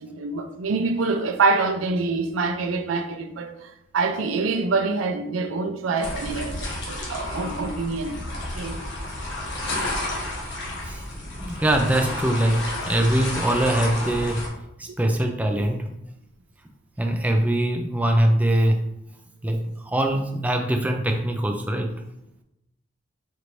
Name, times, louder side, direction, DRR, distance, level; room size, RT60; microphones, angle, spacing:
voice 1, 0.0-8.3 8.5-8.8, right 3 dB, 90° right, 0.4 m, -26 dB
sound 1, 6.0-14.5, left 1 dB, 65° left, 1.0 m, -31 dB
voice 2, 11.4-14.5 14.8-15.9 17.0-18.9 19.4-21.9, right 1 dB, 10° right, 0.3 m, -22 dB
4.4 x 3.1 x 2.5 m
head